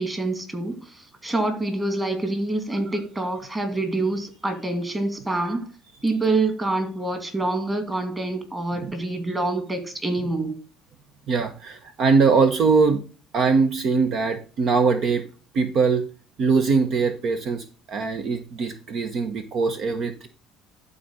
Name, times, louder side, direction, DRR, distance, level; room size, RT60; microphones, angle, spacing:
voice 1, 0.0-5.7 6.0-10.6, right 2 dB, 15° right, 2.6 m, -26 dB
voice 2, 11.3-13.0 13.3-15.3 15.5-16.0 16.4-20.3, right 4 dB, 55° right, 1.1 m, -22 dB
12.0 x 4.1 x 5.6 m
supercardioid pair, 95°, 0 cm